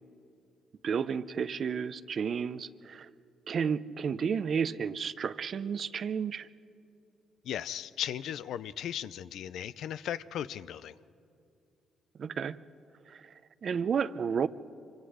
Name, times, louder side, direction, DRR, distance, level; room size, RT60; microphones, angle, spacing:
voice 1, 0.8-3.1 3.5-6.5 12.2-12.6 13.1-13.2 13.6-14.5, right 6 dB, 50° right, 15 dB, 0.6 m, -32 dB
voice 2, 7.4-10.9, left 10 dB, 75° left, 16 dB, 0.5 m, -37 dB
25.5 x 24.5 x 5.0 m, 2.6 s
cardioid pair, 90°, 0 cm